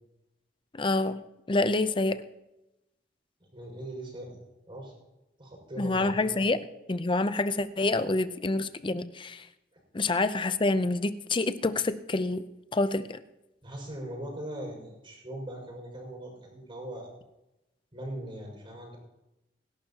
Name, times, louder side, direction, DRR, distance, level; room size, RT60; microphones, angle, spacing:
voice 1, 0.7-1.2 1.5-2.2 5.8-6.6 6.9-9.4 9.9-12.4 12.7-13.2, left 2 dB, 25° left, 12 dB, 0.6 m, -27 dB
voice 2, 3.5-4.4 4.7-5.0 5.4-6.4 13.6-17.1 17.9-19.0, right 1 dB, 30° right, -2 dB, 5.9 m, -40 dB
26.0 x 11.5 x 2.9 m, 0.96 s
head